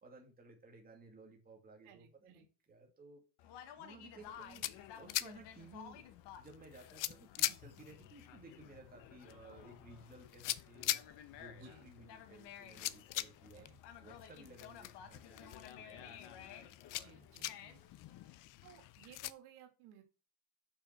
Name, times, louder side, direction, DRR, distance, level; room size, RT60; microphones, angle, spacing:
voice 1, 0.0-3.2 3.8-13.7 14.0-16.7, right 2 dB, 20° right, 0 dB, 2.4 m, -57 dB
voice 2, 1.8-2.5 11.6-11.9 13.5-13.8 17.0-17.8 18.6-20.0, right 9 dB, 90° right, 4 dB, 2.4 m, -59 dB
Conversation, 3.4-18.4, left 9 dB, 60° left, 1.5 m, -55 dB
sound 1, 4.2-19.3, left 15 dB, 45° left, 0.5 m, -44 dB
6.7 x 5.8 x 6.5 m, 0.33 s
cardioid pair, 145°, 46 cm